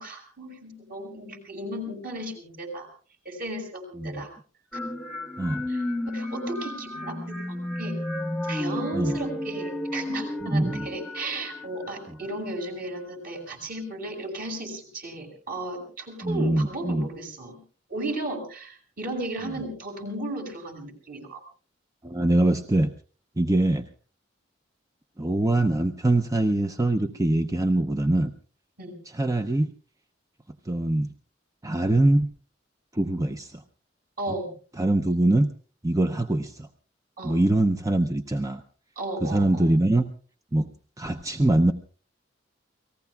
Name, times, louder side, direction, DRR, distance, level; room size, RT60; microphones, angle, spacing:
voice 1, 0.0-2.9 3.2-4.3 5.7-8.0 8.5-17.6 17.9-21.4 28.8-29.0 34.2-34.5 37.2-37.4 39.0-39.7, right 1 dB, 50° right, 2 dB, 6.1 m, -35 dB
sound 1, 4.7-12.4, left 1 dB, ahead, 1.2 m, -32 dB
voice 2, 10.4-10.9 16.2-17.1 22.0-22.9 23.4-23.9 25.2-28.3 29.0-29.7 30.7-31.1 31.6-32.3 32.9-33.6 34.8-35.5 35.8-36.7 37.2-38.6 39.2-40.1 40.5-40.7 41.0-41.7, right 1 dB, 20° right, 7 dB, 0.7 m, -23 dB
29.5 x 19.0 x 2.3 m, 0.40 s
head